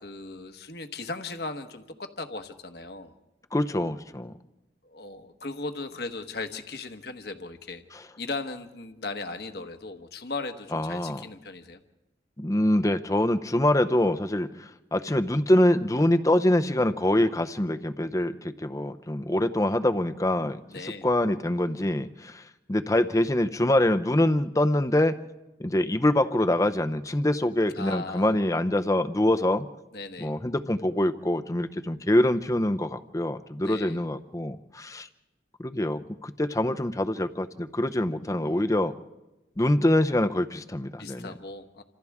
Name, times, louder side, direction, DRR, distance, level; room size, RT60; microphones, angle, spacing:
voice 1, 0.0-3.1 4.8-7.8 8.2-11.8 20.7-21.1 27.7-28.4 29.9-30.3 33.6-34.0 38.2-38.7 41.0-41.8, left 3 dB, 60° left, 7 dB, 1.3 m, -37 dB
voice 2, 3.5-4.3 10.7-11.2 12.4-22.4 22.7-25.2 25.6-29.7 30.2-35.1 35.6-38.9 39.6-41.3, left 1 dB, 20° left, 10 dB, 0.7 m, -25 dB
28.0 x 26.5 x 3.6 m, 1.0 s
head